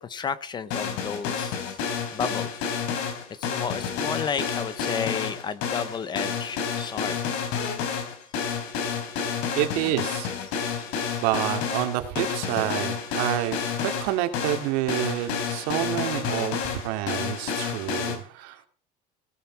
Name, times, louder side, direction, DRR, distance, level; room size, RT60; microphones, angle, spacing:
voice 1, 0.0-2.5 3.3-7.2 10.7-11.2, left 6 dB, 20° left, 15 dB, 0.8 m, -32 dB
sound 1, 0.7-18.2, left 6 dB, 65° left, 3.9 m, -30 dB
voice 2, 9.5-10.3 11.2-18.7, right 13 dB, 75° right, 7 dB, 2.5 m, -28 dB
18.0 x 10.5 x 4.6 m, 0.41 s
cardioid pair, 170°, 21 cm